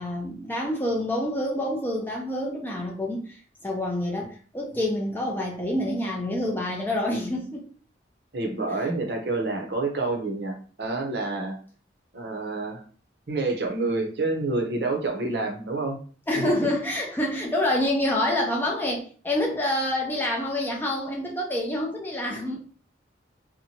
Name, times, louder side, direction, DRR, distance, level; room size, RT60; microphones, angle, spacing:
voice 1, 0.0-3.4 3.6-7.7 16.3-22.6, left 1 dB, 10° left, -2 dB, 0.4 m, -27 dB
voice 2, 8.3-11.6 12.1-12.8 13.3-16.0, right 3 dB, 60° right, 2 dB, 0.7 m, -28 dB
2.8 x 2.1 x 2.8 m, 0.42 s
head